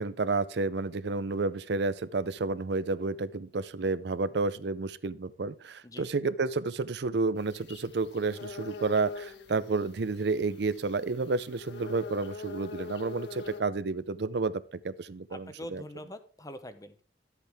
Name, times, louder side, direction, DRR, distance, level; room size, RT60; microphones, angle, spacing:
voice 1, 0.0-15.8, right 3 dB, 65° right, 0.5 m, -31 dB
sound 1, 7.4-13.6, left 4 dB, 75° left, 1.2 m, -44 dB
voice 2, 15.3-17.0, left 1 dB, 20° left, 0.8 m, -44 dB
12.0 x 8.3 x 3.5 m
head